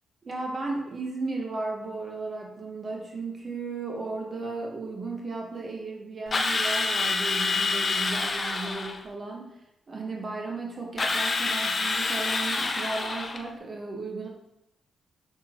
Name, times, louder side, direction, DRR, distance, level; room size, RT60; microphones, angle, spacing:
voice 1, 0.2-9.5 9.9-14.3, right 3 dB, 40° right, -1 dB, 1.1 m, -35 dB
Drill, 6.3-9.0 11.0-13.5, left 3 dB, 40° left, 0.6 m, -27 dB
5.9 x 5.5 x 2.9 m, 0.85 s
cardioid pair, 85°, 0 cm